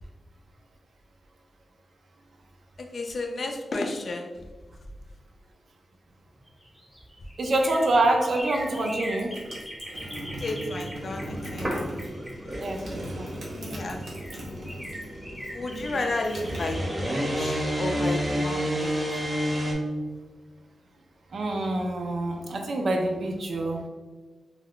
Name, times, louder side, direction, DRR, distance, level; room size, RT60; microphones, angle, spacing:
voice 1, 2.8-4.3 8.7-8.9 10.3-12.3 13.5-14.0 15.5-16.8 17.1-19.1, left 2 dB, 55° left, 3 dB, 0.4 m, -33 dB
sound 1, 6.3-13.2 13.7-13.8 14.0-19.8 20.1-20.2, equal, ahead, 0.8 m, -42 dB
voice 2, 7.4-9.3 12.6-13.3 21.3-23.8, right 2 dB, 65° right, 2 dB, 0.4 m, -26 dB
sound 2, 8.6-15.2 15.5-17.3, right 1 dB, 90° right, 0.8 m, -39 dB
sound 3, 11.0-19.7, equal, 30° right, 0.7 m, -31 dB
2.3 x 2.2 x 3.5 m, 1.3 s
cardioid pair, 80°, 0 cm